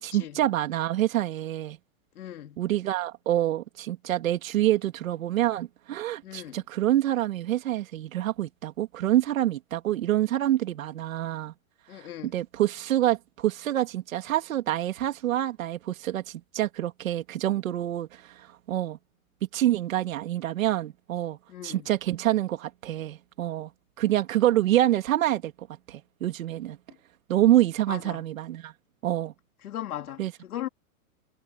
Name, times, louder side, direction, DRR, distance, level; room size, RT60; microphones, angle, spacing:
voice 1, 0.0-1.8 2.6-11.5 12.2-19.0 19.5-21.4 21.6-23.7 24.0-25.5 25.9-26.8 27.3-28.7 29.0-29.3 30.2-30.3, right 13 dB, 65° right, 3.2 m, -26 dB
voice 2, 2.2-2.6 6.2-6.6 11.9-12.3 21.5-21.9 27.9-28.2 29.6-30.7, left 12 dB, 80° left, 3.0 m, -38 dB
supercardioid pair, 180°, 43 cm